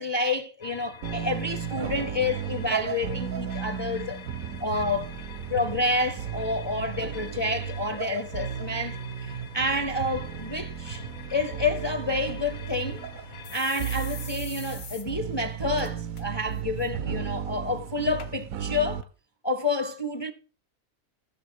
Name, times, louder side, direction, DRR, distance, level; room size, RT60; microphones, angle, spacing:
voice 1, 0.0-4.2 4.6-5.1 5.5-11.0 11.3-13.0 13.5-19.1 19.4-20.3, left 2 dB, 25° left, 0.6 m, -29 dB
sound 1, 0.6-14.4, left 8 dB, 60° left, 1.1 m, -45 dB
sound 2, 1.0-19.0, right 8 dB, 80° right, 1.1 m, -34 dB
sound 3, 12.5-12.6 12.9-13.0 13.4-15.1 15.4-15.5 15.8-16.2 16.6-16.9 17.6-17.7 18.2-18.3 19.0-19.1, left 6 dB, 85° left, 1.7 m, -42 dB
14.5 x 7.2 x 4.6 m
omnidirectional pair, 1.5 m